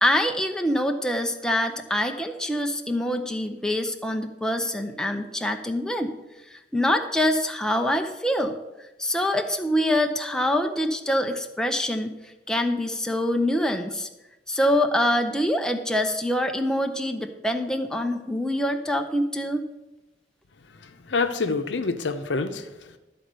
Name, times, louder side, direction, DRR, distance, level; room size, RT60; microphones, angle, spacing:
voice 1, 0.0-6.1 6.5-8.5 9.0-12.1 12.5-14.1 14.5-19.6, left 1 dB, 5° left, 4 dB, 0.6 m, -25 dB
voice 2, 20.6-23.0, left 4 dB, 75° left, 7 dB, 0.7 m, -28 dB
12.0 x 4.3 x 6.6 m, 1.0 s
head